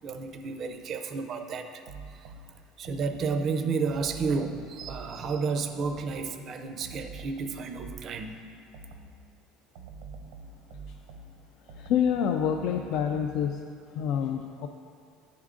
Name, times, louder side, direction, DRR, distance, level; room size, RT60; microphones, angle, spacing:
voice 1, 0.0-2.3 2.8-8.4, right 4 dB, 40° right, 7 dB, 0.4 m, -31 dB
sound 1, 1.9-3.4 3.9-6.3 6.8-9.3 9.7-13.5, right 3 dB, 90° right, 0.6 m, -46 dB
voice 2, 11.7-13.6 13.9-14.7, left 8 dB, 65° left, 4 dB, 0.3 m, -27 dB
10.5 x 3.6 x 3.7 m, 2.3 s
cardioid pair, 135°, 0 cm